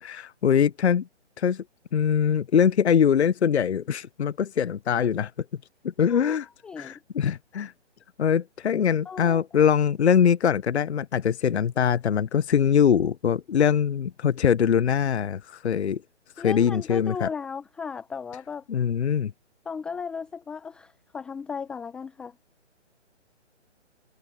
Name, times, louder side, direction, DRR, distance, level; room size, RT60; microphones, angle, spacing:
voice 1, 0.0-1.1 1.4-1.6 1.9-5.3 6.0-6.5 6.8-7.7 8.2-16.0 16.4-17.3 18.7-19.3, left 8 dB, 65° left, 0.7 m, -22 dB
voice 2, 6.6-6.9 9.1-9.4 16.4-18.6 19.7-22.3, left 6 dB, 5° left, 0.7 m, -35 dB
figure-of-eight pair, 140°, 36 cm